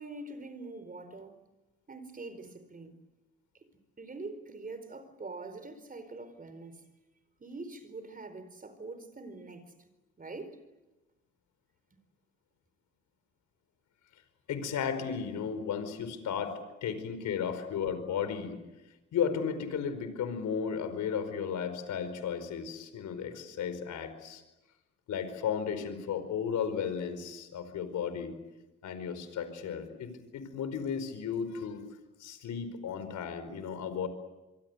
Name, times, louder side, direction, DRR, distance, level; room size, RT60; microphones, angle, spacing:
voice 1, 0.0-1.4 1.9-3.0 3.6-3.7 4.0-6.9 7.4-9.9 10.2-10.6, right 3 dB, 30° right, 4.6 m, -44 dB
voice 2, 14.5-18.6 19.1-24.4 25.1-28.4 28.8-31.8 32.2-34.1, left 7 dB, 75° left, 4.9 m, -34 dB
26.0 x 24.0 x 8.2 m
cardioid pair, 90°, 30 cm